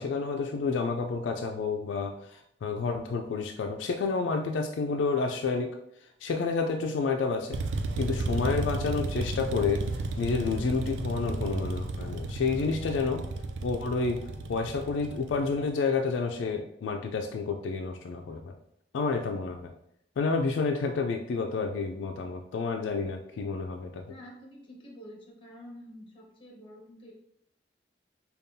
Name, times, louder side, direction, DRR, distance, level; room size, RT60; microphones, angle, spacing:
voice 1, 0.0-7.6 8.0-9.9 10.2-13.2 13.6-14.2 14.5-18.5 18.9-19.7 20.2-24.0, left 4 dB, 80° left, 4 dB, 0.3 m, -30 dB
sound 1, 7.5-15.2, right 1 dB, 10° right, 1.1 m, -52 dB
sound 2, 7.5-15.6, right 2 dB, 80° right, 0.4 m, -33 dB
voice 2, 24.1-27.1, equal, 30° left, -1 dB, 1.0 m, -48 dB
5.2 x 2.3 x 2.6 m, 0.73 s
head